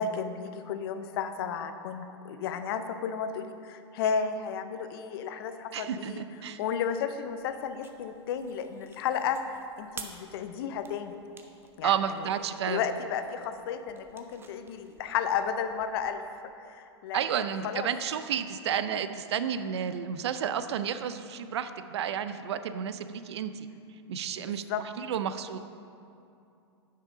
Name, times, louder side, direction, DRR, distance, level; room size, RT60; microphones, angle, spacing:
voice 1, 0.0-6.2 6.6-9.4 9.8-11.2 11.8-12.3 12.7-16.2 16.7-17.2 17.6-17.9 24.4-24.8, left 7 dB, 60° left, 9 dB, 0.6 m, -33 dB
voice 2, 5.7-6.6 11.8-12.8 17.1-23.7 24.1-24.6 25.0-25.6, right 8 dB, 70° right, 11 dB, 0.5 m, -31 dB
sound 1, 7.3-16.1, right 5 dB, 15° right, 0.6 m, -52 dB
8.8 x 5.6 x 4.9 m, 2.6 s
hypercardioid pair, 110°, 14 cm